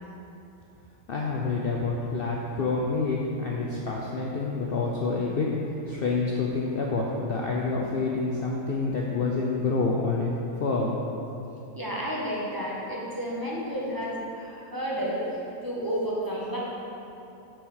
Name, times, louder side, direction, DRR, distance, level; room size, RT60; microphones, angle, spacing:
voice 1, 1.1-10.3 10.6-11.0, left 3 dB, 55° left, -2 dB, 0.7 m, -28 dB
voice 2, 11.7-16.6, equal, 15° right, -6 dB, 1.1 m, -31 dB
6.1 x 5.0 x 6.3 m, 2.9 s
omnidirectional pair, 1.5 m